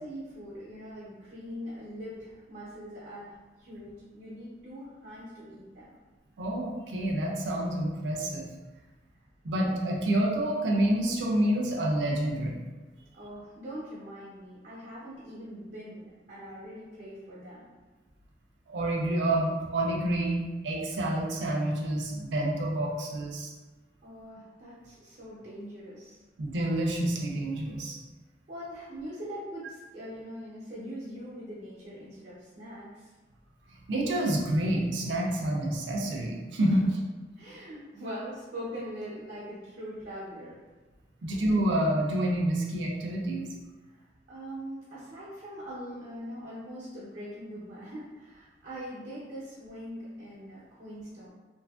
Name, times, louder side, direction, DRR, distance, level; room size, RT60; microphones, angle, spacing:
voice 1, 0.0-5.9 13.1-17.6 24.0-26.2 28.5-33.1 36.6-36.9 37.4-40.6 43.9-51.3, equal, 45° right, -11 dB, 0.7 m, -42 dB
voice 2, 6.4-8.5 9.4-12.6 18.7-23.5 26.4-28.0 33.9-36.8 41.2-43.5, right 1 dB, 85° right, -1 dB, 0.5 m, -28 dB
2.6 x 2.4 x 2.4 m, 1.2 s
head